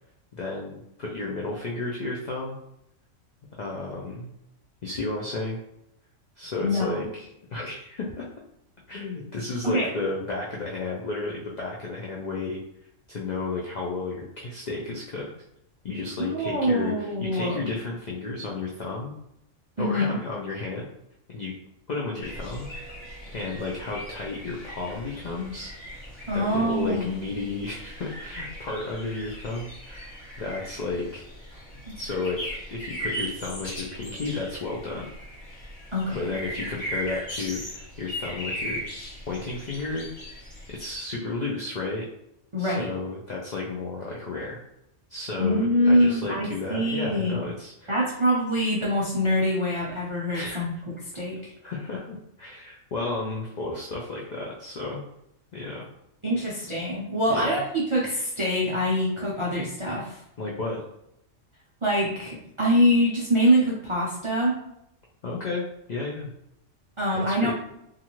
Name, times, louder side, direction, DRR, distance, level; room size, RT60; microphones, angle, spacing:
voice 1, 0.3-2.6 3.6-4.3 4.8-5.6 6.4-8.3 8.9-12.6 13.1-15.3 15.8-19.1 19.8-20.9 21.3-21.5 21.9-22.7 23.3-25.7 26.3-30.1 30.4-31.3 31.9-35.1 36.1-38.8 39.3-40.1 40.7-42.0 42.6-44.6 45.1-48.0 50.3-50.7 51.6-55.0 55.5-55.9 57.3-57.5 60.4-60.8 65.2-66.3 67.1-67.5, left 3 dB, 75° left, -3 dB, 0.4 m, -32 dB
voice 2, 16.2-17.7 19.8-20.2 26.3-27.1 31.9-32.0 35.9-36.4 42.5-42.9 45.4-47.4 47.9-50.7 51.1-51.4 56.2-60.2 61.8-64.6 67.0-67.5, equal, 55° right, -6 dB, 0.3 m, -24 dB
sound 1, 22.2-41.0, equal, ahead, 1.2 m, -38 dB
2.5 x 2.4 x 2.9 m, 0.80 s
omnidirectional pair, 1.3 m